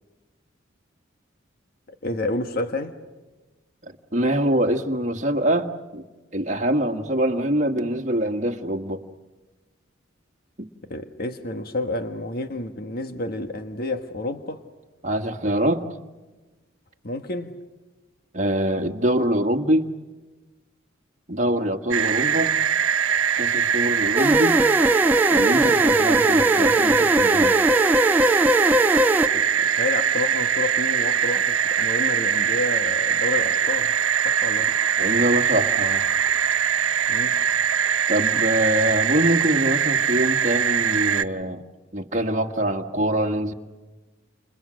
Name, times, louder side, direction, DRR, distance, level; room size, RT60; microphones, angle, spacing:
voice 1, 2.0-2.9 10.9-14.6 17.0-17.6 29.3-33.9 34.2-34.7 37.1-37.4, left 2 dB, 50° left, 1.5 m, -30 dB
voice 2, 3.8-6.0 6.3-9.0 10.6-10.7 15.0-15.9 18.3-19.9 21.3-22.5 23.4-24.6 25.3-27.5 35.0-36.0 38.1-41.6 41.9-43.5, right 1 dB, 40° right, 1.8 m, -24 dB
sound 1, 21.9-41.2, right 8 dB, 85° right, 0.8 m, -22 dB
sound 2, 24.2-29.3, right 1 dB, 10° right, 0.9 m, -20 dB
30.0 x 29.5 x 6.4 m
head